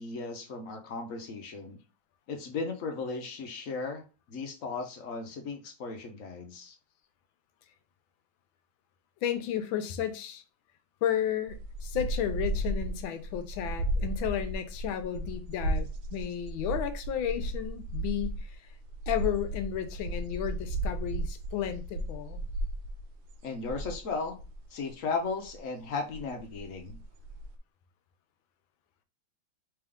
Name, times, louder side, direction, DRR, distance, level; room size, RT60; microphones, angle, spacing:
voice 1, 0.0-1.8 2.3-4.0 4.3-6.8 23.4-24.4 24.7-27.0, left 4 dB, 60° left, 0.9 m, -36 dB
voice 2, 9.2-10.4 11.0-18.7 19.1-22.4, left 10 dB, 85° left, 1.4 m, -33 dB
sound 1, 11.5-24.9 25.4-25.6 25.9-27.6, right 1 dB, 75° right, 1.3 m, -35 dB
3.5 x 3.3 x 3.5 m
omnidirectional pair, 2.2 m